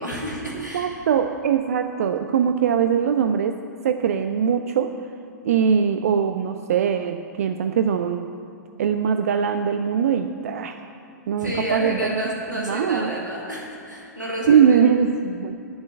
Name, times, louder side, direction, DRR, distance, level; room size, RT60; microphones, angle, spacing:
voice 1, 0.0-0.9 11.4-14.8, equal, 90° right, -3 dB, 2.6 m, -30 dB
voice 2, 0.5-3.6 3.8-5.0 5.4-8.3 8.8-10.8 11.3-13.2 14.5-15.6, right 7 dB, 55° right, 8 dB, 0.5 m, -21 dB
8.7 x 7.6 x 8.4 m, 2.5 s
figure-of-eight pair, 105°, 10 cm